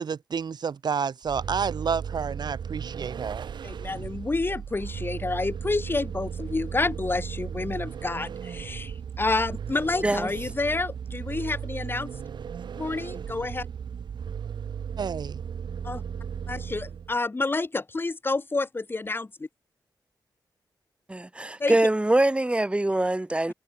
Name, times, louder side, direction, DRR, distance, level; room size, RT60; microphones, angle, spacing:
voice 1, 0.0-3.5 15.0-15.4, right 6 dB, 70° right, 5.7 m, -30 dB
Vehicle, 1.2-17.2, right 7 dB, 85° right, 3.7 m, -36 dB
voice 2, 3.6-12.1 12.8-13.7 15.8-16.0 16.5-19.3 21.6-21.8 23.5-23.6, left 3 dB, 30° left, 5.2 m, -29 dB
voice 3, 21.1-23.5, right 1 dB, 15° right, 5.1 m, -23 dB
wide cardioid pair, 110°, 8 cm